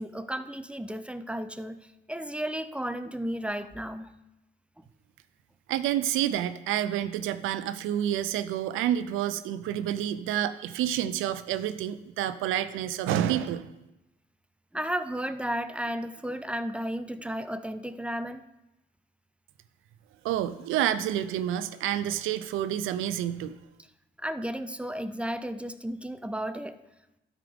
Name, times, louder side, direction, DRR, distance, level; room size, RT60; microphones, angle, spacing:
voice 1, 0.0-1.8 2.1-4.1 14.7-18.4 24.2-26.8, equal, 5° right, 11 dB, 0.4 m, -33 dB
voice 2, 5.7-13.7 20.2-23.6, right 11 dB, 85° right, 12 dB, 0.5 m, -29 dB
12.5 x 5.0 x 3.5 m, 0.95 s
cardioid pair, 90°, 20 cm